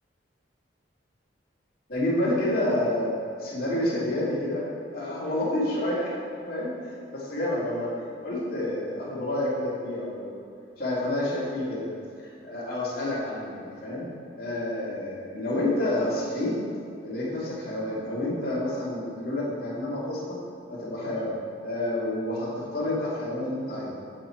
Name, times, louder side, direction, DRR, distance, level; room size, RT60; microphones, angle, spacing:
voice 1, 1.9-3.1 3.4-6.1 6.4-10.4 10.8-11.9 12.2-14.1 14.4-16.6 17.0-20.4 20.7-21.3 21.6-23.9, left 1 dB, 50° left, -8 dB, 2.4 m, -29 dB
8.0 x 7.5 x 4.5 m, 2.4 s
head